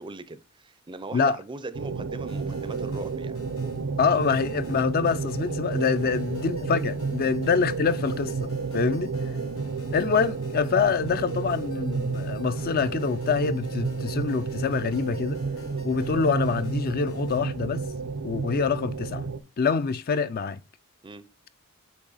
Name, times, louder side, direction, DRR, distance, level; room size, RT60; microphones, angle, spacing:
voice 1, 0.0-3.4 6.0-6.2 7.2-7.3 8.6-8.8 15.7-16.0 21.0-21.3, right 3 dB, 20° right, 0.5 m, -40 dB
sound 1, 1.7-19.4, right 4 dB, 85° right, 0.7 m, -31 dB
sound 2, 2.3-17.4, left 2 dB, 85° left, 2.1 m, -49 dB
voice 2, 4.0-9.1 9.9-15.4 15.8-17.8 18.2-19.3 19.6-20.6, left 5 dB, 45° left, 0.4 m, -25 dB
8.3 x 3.0 x 4.0 m
head